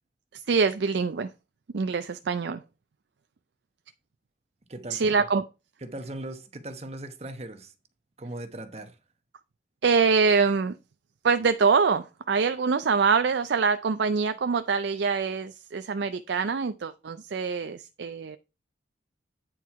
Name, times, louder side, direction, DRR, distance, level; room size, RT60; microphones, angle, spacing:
voice 1, 0.3-1.3 1.7-2.6 4.9-5.4 9.8-10.8 11.2-18.4, right 5 dB, 70° right, 0.4 m, -24 dB
voice 2, 4.7-5.2 5.8-7.7 8.2-9.0, right 1 dB, 35° right, 1.0 m, -39 dB
8.9 x 4.5 x 4.7 m
head